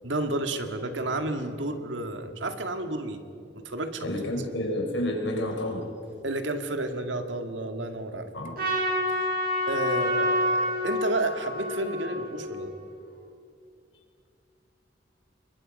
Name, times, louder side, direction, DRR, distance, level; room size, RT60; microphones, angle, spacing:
voice 1, 0.0-3.2 3.5-4.5 6.2-8.3 9.7-12.7, right 2 dB, 85° right, 7 dB, 2.0 m, -31 dB
voice 2, 4.0-5.9 8.3-8.6, left 1 dB, 85° left, 2 dB, 4.8 m, -30 dB
Trumpet, 8.6-12.9, left 1 dB, 50° right, 7.4 m, -28 dB
27.0 x 22.5 x 5.4 m, 2.5 s
head